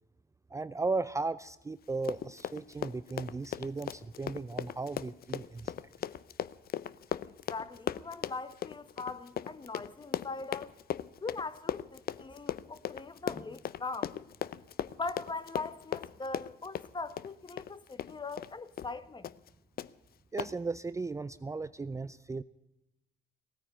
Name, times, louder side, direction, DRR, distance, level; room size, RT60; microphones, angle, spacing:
voice 1, 0.5-5.7 20.3-22.4, right 3 dB, 15° right, 0.5 m, -36 dB
Run, 1.9-18.5 18.8-18.9 19.2-19.5 19.8-19.9 20.4-20.5, left 10 dB, 60° left, 0.6 m, -38 dB
voice 2, 7.5-10.7 11.2-14.1 15.0-19.3, left 3 dB, 25° left, 1.1 m, -41 dB
17.0 x 9.5 x 9.0 m
cardioid pair, 90°, 18 cm